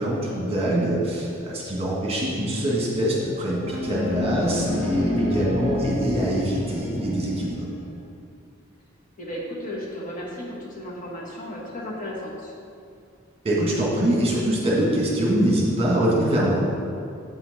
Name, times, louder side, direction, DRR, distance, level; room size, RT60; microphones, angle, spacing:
voice 1, 0.0-7.7 13.4-16.6, right 1 dB, 30° right, -4 dB, 1.5 m, -24 dB
sound 1, 3.3-7.9, left 1 dB, 70° left, 1.0 m, -29 dB
voice 2, 9.2-12.5, left 1 dB, 40° left, -4 dB, 1.3 m, -34 dB
7.8 x 5.8 x 4.1 m, 2.4 s
head